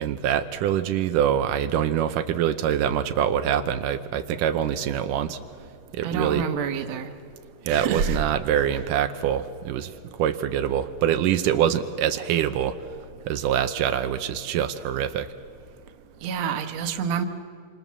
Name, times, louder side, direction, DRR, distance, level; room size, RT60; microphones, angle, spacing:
voice 1, 0.0-5.4 5.9-6.4 7.7-12.8 13.3-15.3, right 9 dB, 85° right, 8 dB, 2.4 m, -24 dB
voice 2, 6.0-7.1 7.7-8.2 16.2-17.2, right 7 dB, 60° right, 7 dB, 2.4 m, -27 dB
27.5 x 26.5 x 7.4 m, 2.3 s
omnidirectional pair, 3.7 m